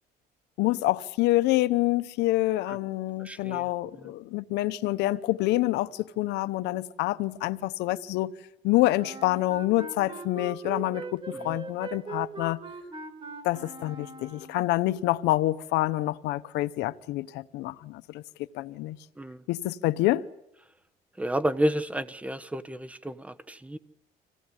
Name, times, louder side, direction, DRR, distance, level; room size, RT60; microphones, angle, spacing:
voice 1, 0.6-8.3 8.6-12.6 13.4-18.2 18.5-19.0 19.5-20.3, left 17 dB, 90° left, 0.9 m, -27 dB
voice 2, 3.2-4.1 11.3-11.6 19.2-19.4 21.2-23.8, equal, 10° right, 1.2 m, -31 dB
Wind instrument woodwind instrument, 8.9-14.6, right 3 dB, 30° right, 3.9 m, -40 dB
26.5 x 17.5 x 9.9 m
cardioid pair, 110°, 17 cm